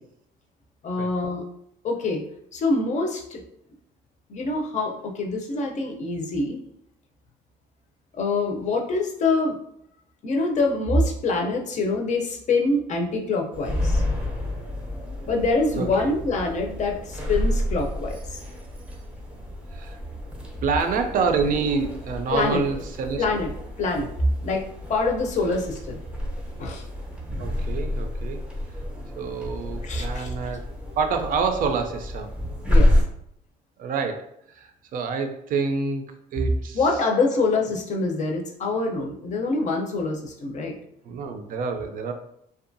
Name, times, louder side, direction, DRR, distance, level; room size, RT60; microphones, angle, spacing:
voice 1, 0.8-1.4 1.8-2.2 2.5-3.4 4.3-6.6 8.2-9.6 10.2-14.0 15.3-18.4 22.3-22.6 23.2-23.5 23.8-24.1 24.4-26.0 26.6-26.8 29.8-30.3 32.7-33.0 36.7-40.7, left 3 dB, 45° left, 1 dB, 0.5 m, -25 dB
sound 1, 13.5-33.0, left 1 dB, 5° right, 0.6 m, -29 dB
voice 2, 15.8-16.1 19.7-20.0 20.6-23.2 27.4-28.4 29.2-30.7 31.0-32.3 33.8-36.0 36.3-36.8 41.0-42.1, right 5 dB, 55° right, 6 dB, 0.4 m, -27 dB
2.6 x 2.3 x 2.6 m, 0.73 s
cardioid pair, 110°, 17 cm